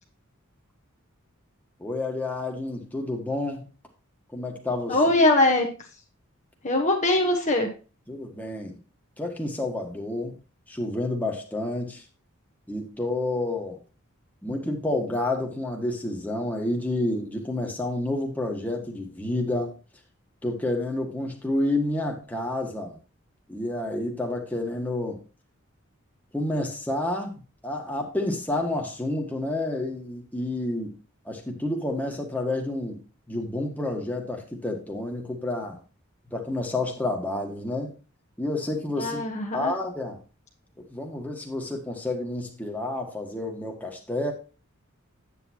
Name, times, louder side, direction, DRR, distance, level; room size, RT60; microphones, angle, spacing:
voice 1, 1.8-3.7 4.3-5.0 8.1-8.8 9.2-10.3 10.7-12.0 12.7-13.8 14.4-19.8 20.4-23.0 23.5-25.2 26.3-27.3 27.6-30.9 31.2-33.0 33.3-35.8 36.3-37.9 38.4-39.2 39.5-40.2 40.8-44.3, left 2 dB, 10° left, 1.5 m, -29 dB
voice 2, 4.9-5.7 6.6-7.7 39.0-39.7, left 2 dB, 35° left, 1.1 m, -21 dB
8.7 x 8.4 x 2.9 m
head